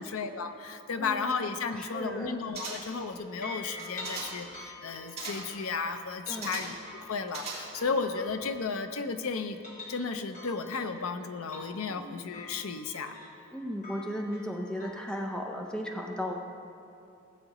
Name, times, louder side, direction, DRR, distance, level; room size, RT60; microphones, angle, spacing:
voice 1, 0.0-9.6 9.9-13.2, left 4 dB, 80° left, 8 dB, 0.6 m, -34 dB
voice 2, 1.0-1.4 1.8-2.4 6.3-6.6 11.9-12.2 13.5-16.4, equal, 5° left, 0 dB, 0.6 m, -36 dB
sound 1, 2.5-3.1 3.7-4.5 5.2-5.6 6.4-6.9 7.3-8.0 8.3-8.4, right 4 dB, 30° right, 2.0 m, -40 dB
sound 2, 3.2-9.1 9.5-15.2, left 2 dB, 35° left, 2.1 m, -47 dB
16.5 x 7.7 x 3.0 m, 2.6 s
head